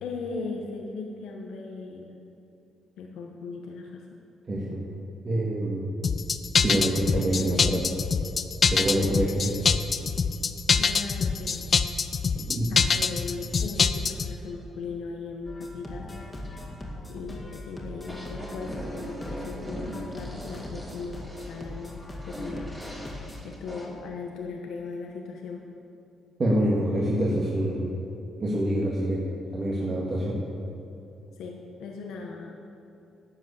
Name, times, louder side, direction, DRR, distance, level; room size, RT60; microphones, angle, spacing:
voice 1, 0.0-2.2 3.0-4.0 10.8-11.7 12.7-16.1 17.1-22.7 23.4-25.6 31.4-32.6, left 4 dB, 80° left, 1 dB, 1.1 m, -38 dB
voice 2, 4.5-4.8 5.2-5.8 6.6-7.9 8.7-9.5 12.3-12.7 26.4-27.9 28.4-29.2 29.5-30.4, right 1 dB, 40° right, -5 dB, 2.0 m, -26 dB
sound 1, 6.0-14.3, left 5 dB, 45° left, 0.5 m, -24 dB
sound 2, 15.5-23.4, left 1 dB, 20° left, 2.1 m, -40 dB
sound 3, 18.0-23.9, equal, 5° right, 2.7 m, -40 dB
12.0 x 7.3 x 7.1 m, 2.7 s
cardioid pair, 90°, 0 cm